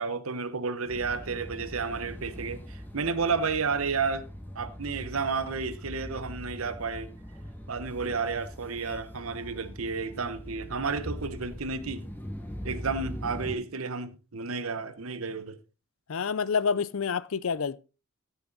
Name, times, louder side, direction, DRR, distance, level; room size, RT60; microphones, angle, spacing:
voice 1, 0.0-4.3 4.5-7.1 7.7-12.1 12.6-15.6, right 4 dB, 85° right, 1.0 m, -31 dB
sound 1, 0.9-13.5, equal, 10° left, 4.8 m, -41 dB
voice 2, 16.1-17.8, left 6 dB, 75° left, 0.6 m, -28 dB
15.0 x 7.0 x 4.0 m
head